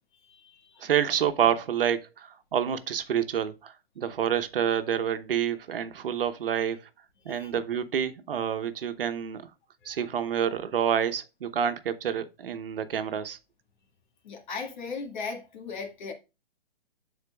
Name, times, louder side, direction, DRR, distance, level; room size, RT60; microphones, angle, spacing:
voice 1, 0.2-0.9 7.2-7.5 9.8-10.0 14.2-16.1, left 4 dB, 50° left, 2.0 m, -38 dB
voice 2, 0.8-6.8 7.2-9.5 9.8-13.4, right 9 dB, 65° right, 1.1 m, -28 dB
13.0 x 4.4 x 2.3 m
hypercardioid pair, 145°, 30 cm